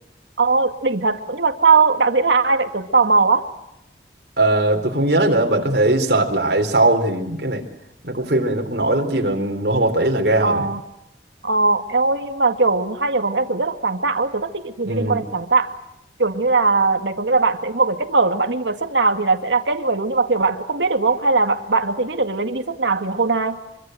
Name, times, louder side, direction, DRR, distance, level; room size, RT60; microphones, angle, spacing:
voice 1, 0.4-3.5 10.4-10.8 11.4-15.7 16.2-23.6, right 3 dB, 85° right, 7 dB, 2.1 m, -19 dB
voice 2, 4.4-7.6 8.0-10.7 14.9-15.2, right 2 dB, 65° right, 4 dB, 4.0 m, -19 dB
25.5 x 24.0 x 7.9 m, 0.87 s
head